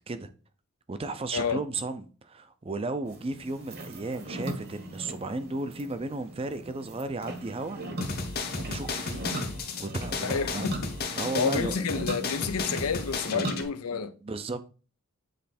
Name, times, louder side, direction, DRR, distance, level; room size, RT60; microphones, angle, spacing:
voice 1, 0.9-7.8 8.6-9.3 9.8-10.7 11.2-11.9 13.3-13.5 13.9-14.7, right 2 dB, 25° right, 0.5 m, -34 dB
sound 1, 3.0-13.6, right 1 dB, 45° right, 1.1 m, -39 dB
sound 2, 8.0-13.6, left 4 dB, 45° left, 0.9 m, -34 dB
voice 2, 10.2-14.1, left 6 dB, 90° left, 0.5 m, -30 dB
7.7 x 3.1 x 4.2 m
head